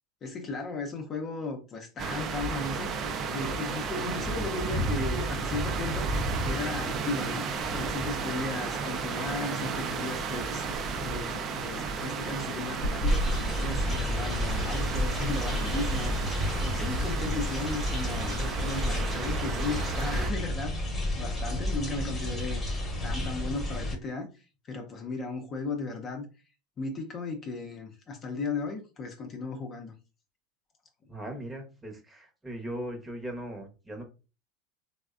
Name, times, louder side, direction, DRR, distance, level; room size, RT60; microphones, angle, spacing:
voice 1, 0.2-3.0 3.3-10.6 11.0-22.6 23.0-26.3 26.8-29.9, left 3 dB, 35° left, 0.6 m, -36 dB
sound 1, 2.0-16.3, right 1 dB, 80° left, 0.6 m, -39 dB
sound 2, 2.0-20.3, right 4 dB, 40° right, 0.4 m, -33 dB
sound 3, 13.1-23.9, left 1 dB, 20° left, 1.0 m, -31 dB
voice 2, 31.1-34.0, right 1 dB, 15° right, 0.9 m, -39 dB
3.2 x 2.1 x 2.4 m
hypercardioid pair, 90°, 0 cm